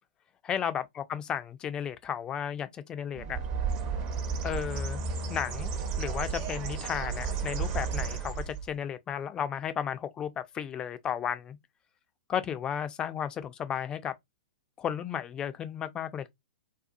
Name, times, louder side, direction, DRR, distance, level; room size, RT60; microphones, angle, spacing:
voice 1, 0.4-3.4 4.4-5.0 5.3-11.6 12.3-14.1 14.8-16.3, left 8 dB, 20° left, 0.4 m, -34 dB
Bird, 3.2-8.7, right 5 dB, 35° right, 0.7 m, -33 dB
2.6 x 2.3 x 2.5 m
figure-of-eight pair, 105°, 4 cm